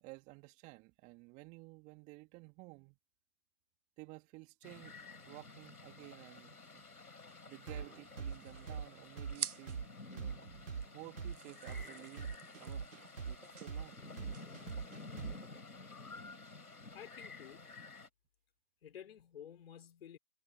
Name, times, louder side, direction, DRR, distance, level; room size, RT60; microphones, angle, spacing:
voice 1, 0.0-3.0 4.0-6.9 7.5-9.8 10.1-10.5 10.9-12.9 13.2-14.0, right 26 dB, 15° right, 2.2 m, -54 dB
sound 1, 4.6-18.1, left 3 dB, 75° left, 6.1 m, -52 dB
sound 2, 7.7-15.6, right 6 dB, 55° right, 2.3 m, -43 dB
sound 3, 7.9-15.6, right 7 dB, 75° right, 0.8 m, -50 dB
voice 2, 16.9-17.9 18.8-20.2, left 9 dB, 40° left, 3.8 m, -52 dB
figure-of-eight pair, 140°, 45 cm